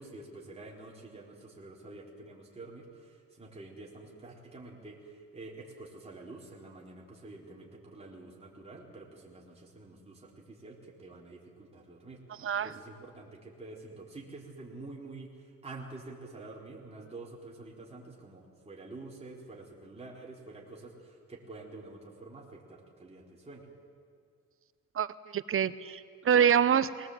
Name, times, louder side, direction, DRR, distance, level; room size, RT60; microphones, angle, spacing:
voice 1, 0.0-12.2 12.6-23.7, right 2 dB, 20° right, -3 dB, 3.8 m, -48 dB
voice 2, 25.3-27.1, right 8 dB, 45° right, 14 dB, 0.9 m, -26 dB
21.0 x 18.0 x 7.9 m, 2.2 s
cardioid pair, 90°, 30 cm